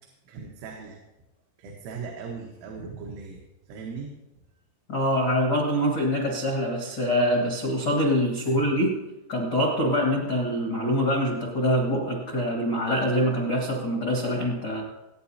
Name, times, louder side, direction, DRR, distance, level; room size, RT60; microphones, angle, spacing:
voice 1, 0.3-1.0 1.6-3.4 3.7-4.1 8.5-8.6, right 5 dB, 85° right, 0 dB, 3.8 m, -38 dB
voice 2, 4.9-9.0 9.3-14.8, equal, 90° left, -1 dB, 0.9 m, -24 dB
21.5 x 9.6 x 2.8 m, 0.98 s
omnidirectional pair, 5.4 m